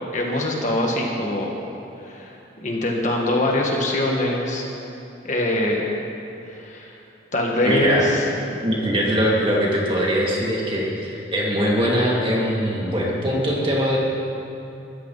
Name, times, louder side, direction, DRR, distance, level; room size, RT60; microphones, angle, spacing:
voice 1, 0.1-1.6 2.0-4.6 5.2-5.9 6.6-6.9 7.3-8.2, left 1 dB, 40° left, -1 dB, 1.8 m, -23 dB
voice 2, 7.6-8.0 8.5-14.0, equal, 25° right, -4 dB, 2.6 m, -22 dB
22.5 x 14.5 x 4.2 m, 2.8 s
head